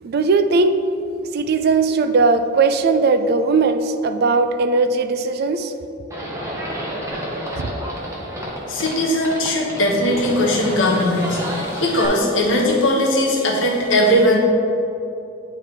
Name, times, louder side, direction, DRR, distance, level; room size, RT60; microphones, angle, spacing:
voice 1, 0.0-0.8 1.3-5.7 7.6-7.7, right 4 dB, 50° right, 8 dB, 0.4 m, -18 dB
Livestock farm animals working animals, 6.1-12.1, equal, 15° right, 1.0 m, -30 dB
voice 2, 8.7-14.4, left 1 dB, 70° left, -2 dB, 1.2 m, -19 dB
9.4 x 3.3 x 4.5 m, 2.8 s
head